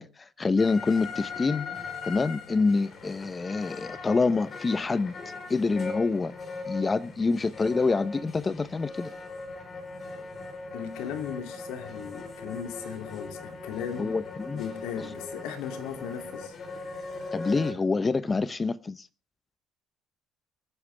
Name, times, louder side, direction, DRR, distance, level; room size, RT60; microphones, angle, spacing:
voice 1, 0.0-1.7 2.0-5.1 5.5-6.3 6.7-9.1 14.0-14.6 17.3-19.1, left 4 dB, 25° left, 0.7 m, -26 dB
sound 1, 0.6-17.7, left 3 dB, 40° left, 4.0 m, -40 dB
voice 2, 10.7-14.2 14.5-16.5, left 8 dB, 80° left, 2.6 m, -37 dB
24.5 x 9.7 x 3.3 m
cardioid pair, 105°, 0 cm